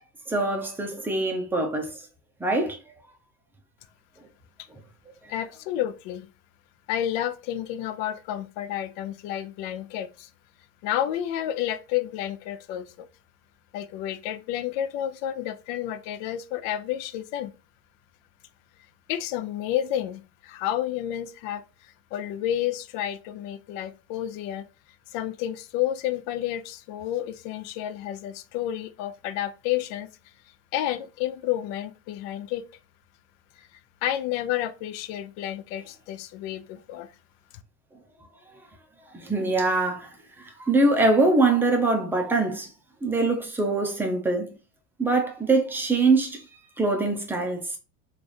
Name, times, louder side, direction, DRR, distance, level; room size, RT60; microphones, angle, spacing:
voice 1, 0.3-1.9 2.4-2.8 39.1-42.7 43.0-44.5 45.0-46.4 46.8-47.8, right 3 dB, 5° right, 0.5 m, -23 dB
voice 2, 5.3-6.3 6.9-10.3 10.8-13.1 13.7-17.5 19.1-24.7 25.1-30.1 30.7-32.7 33.6-33.7 34.0-37.1, left 11 dB, 60° left, 0.5 m, -30 dB
3.3 x 2.4 x 3.9 m
cardioid pair, 155°, 39 cm